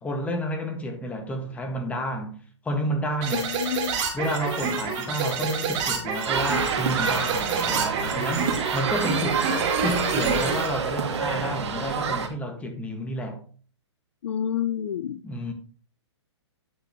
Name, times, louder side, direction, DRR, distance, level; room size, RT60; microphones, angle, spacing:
voice 1, 0.0-3.5 4.1-9.4 9.8-13.4 15.2-15.5, equal, 10° left, 1.7 m, -30 dB
sound 1, 3.2-10.7, right 5 dB, 35° right, 3.0 m, -28 dB
voice 2, 3.3-4.0 14.2-15.2, left 9 dB, 65° left, 0.5 m, -29 dB
sound 2, 6.2-12.3, right 6 dB, 65° right, 2.1 m, -27 dB
10.0 x 7.7 x 3.0 m
hypercardioid pair, 140°, 15 cm